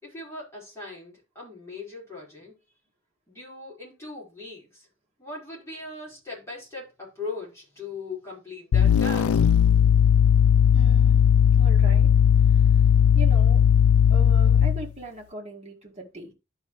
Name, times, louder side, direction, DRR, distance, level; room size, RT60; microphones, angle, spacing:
voice 1, 0.0-2.6 3.3-4.9 5.2-9.4, left 3 dB, 10° left, 4.6 m, -39 dB
sound 1, 8.7-14.9, left 8 dB, 80° left, 0.4 m, -18 dB
voice 2, 10.7-11.2 11.6-12.1 12.5-12.7 13.1-13.6 14.1-16.3, right 2 dB, 30° right, 1.9 m, -39 dB
12.0 x 5.0 x 3.2 m
head